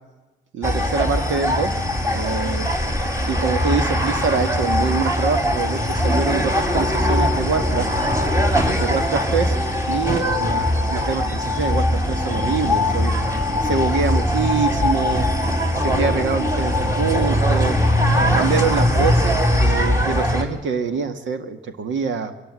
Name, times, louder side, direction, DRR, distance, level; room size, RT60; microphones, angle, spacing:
voice 1, 0.5-1.7 2.1-2.7 3.3-7.9 8.8-9.5 9.9-13.1 13.6-15.3 15.8-17.8 18.3-22.3, right 5 dB, 70° right, 8 dB, 2.0 m, -25 dB
sound 1, 0.6-20.4, left 1 dB, 15° right, 3.7 m, -21 dB
24.0 x 14.5 x 9.9 m, 1.1 s
cardioid pair, 90°, 20 cm